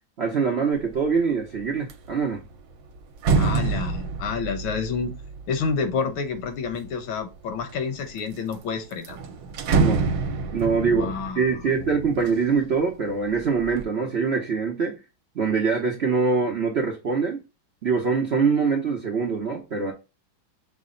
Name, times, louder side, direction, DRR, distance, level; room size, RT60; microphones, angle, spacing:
voice 1, 0.2-2.4 9.7-10.0 10.5-15.0 15.3-17.4 17.8-19.9, right 5 dB, 55° right, 0.7 m, -24 dB
sound 1, 0.8-1.2 1.6-6.9 7.5-8.2 8.5-8.6 8.9-12.8 13.2-13.8, right 4 dB, 75° right, 1.4 m, -27 dB
voice 2, 3.3-5.1 5.5-9.2 10.9-11.4, left 5 dB, 90° left, 1.6 m, -29 dB
6.1 x 2.1 x 3.7 m
omnidirectional pair, 2.1 m